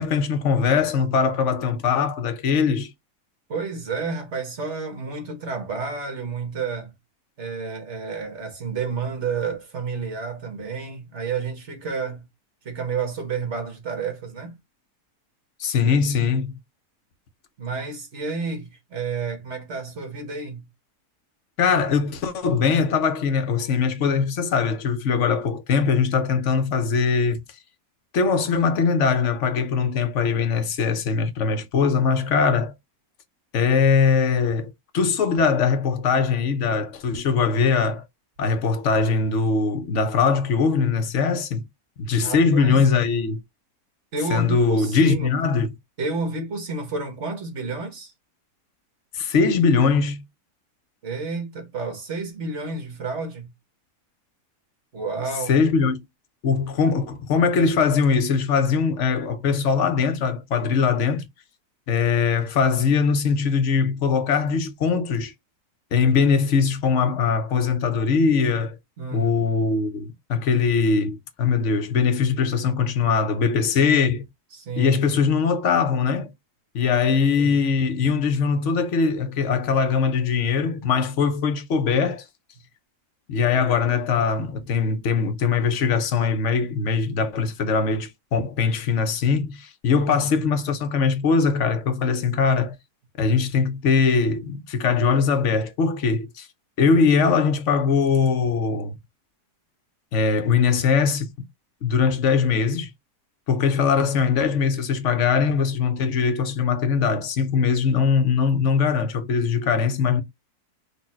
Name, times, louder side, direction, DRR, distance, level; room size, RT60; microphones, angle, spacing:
voice 1, 0.0-2.9 15.6-16.6 21.6-27.4 28.1-32.7 33.5-38.0 38.4-41.6 42.0-43.4 44.3-45.7 49.1-50.2 55.5-56.1 56.4-61.3 61.9-65.3 65.9-68.8 69.1-74.2 74.8-76.3 76.7-82.2 83.3-92.7 93.2-96.5 96.8-98.9 100.1-101.3 101.8-102.9 103.5-110.2, left 5 dB, 55° left, 1.0 m, -21 dB
voice 2, 3.5-6.9 7.4-12.2 12.6-14.6 17.6-20.6 42.1-42.8 44.1-45.4 46.0-48.1 51.0-53.5 54.9-55.6 69.0-69.3 74.5-75.0 77.4-77.6 89.9-90.5, right 4 dB, 45° right, 1.6 m, -30 dB
4.2 x 2.6 x 4.3 m
omnidirectional pair, 1.7 m